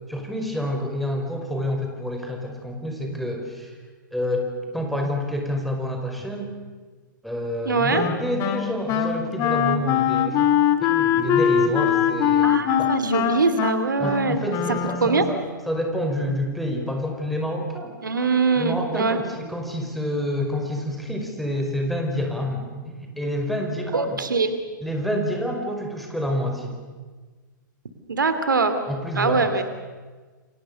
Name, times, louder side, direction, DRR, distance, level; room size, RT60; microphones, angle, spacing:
voice 1, 0.1-3.8 4.1-6.5 7.2-10.5 10.8-13.0 14.0-15.4 15.7-18.0 18.6-24.2 24.8-26.8 28.9-29.6, equal, ahead, 2 dB, 5.2 m, -28 dB
voice 2, 7.7-8.1 12.4-14.4 15.0-15.2 18.0-19.2 23.9-24.5 28.1-28.8 29.2-29.6, right 4 dB, 75° right, 9 dB, 2.7 m, -22 dB
Wind instrument woodwind instrument, 7.9-15.4, left 9 dB, 30° left, 2.2 m, -22 dB
30.0 x 25.0 x 6.9 m, 1.4 s
figure-of-eight pair, 110°, 11 cm